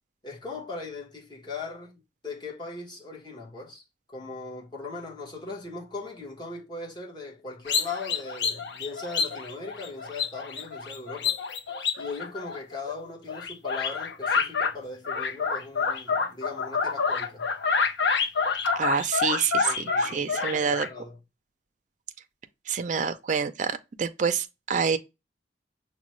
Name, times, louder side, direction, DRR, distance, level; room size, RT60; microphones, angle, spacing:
voice 1, 0.2-11.4 12.0-17.5 19.6-21.2, left 3 dB, 25° left, 1.2 m, -39 dB
sound 1, 7.7-12.9 13.3-14.7 15.0-20.9, left 5 dB, 80° left, 0.6 m, -28 dB
voice 2, 18.8-20.9 22.7-25.0, right 6 dB, 45° right, 0.4 m, -27 dB
6.1 x 2.2 x 3.0 m
head